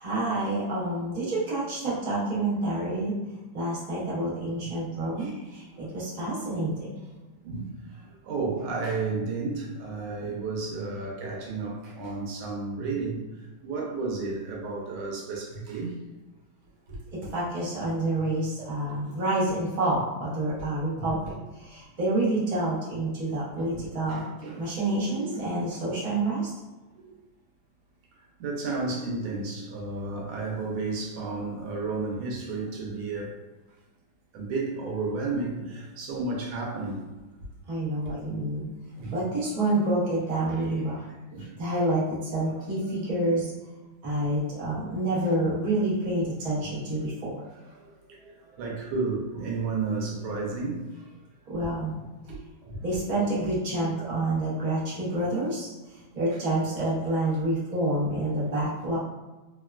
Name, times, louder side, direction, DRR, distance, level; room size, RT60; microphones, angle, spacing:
voice 1, 0.0-3.1 3.5-6.9 17.1-24.3 24.6-26.5 37.7-38.7 39.1-41.0 41.4-43.5 44.0-47.4 51.5-52.0 52.8-55.7 56.1-59.0, right 1 dB, 30° right, -9 dB, 0.6 m, -28 dB
voice 2, 7.4-13.2 13.6-15.9 20.6-20.7 20.9-21.2 23.7-24.6 24.9-25.4 26.9-27.1 28.4-33.3 34.3-37.0 39.0-39.2 41.3-41.5 44.1-44.3 44.7-44.9 46.6-46.7 47.8-50.9 52.6-52.8 53.8-53.9 58.4-58.5, right 3 dB, 85° right, -2 dB, 1.5 m, -32 dB
3.5 x 2.2 x 2.3 m, 1.2 s
omnidirectional pair, 2.2 m